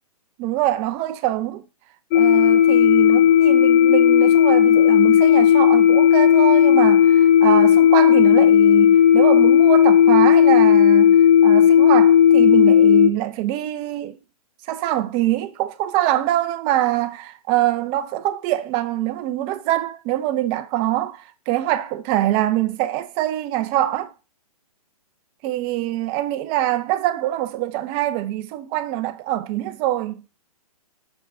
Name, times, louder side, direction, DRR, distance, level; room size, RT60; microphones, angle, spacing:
voice 1, 0.4-1.6 2.1-14.2 14.7-24.1 25.4-30.2, right 14 dB, 30° right, 0.8 m, -24 dB
sound 1, 2.1-13.1, left 9 dB, 25° left, 0.5 m, -13 dB
6.3 x 4.0 x 4.6 m
hypercardioid pair, 130°, 19 cm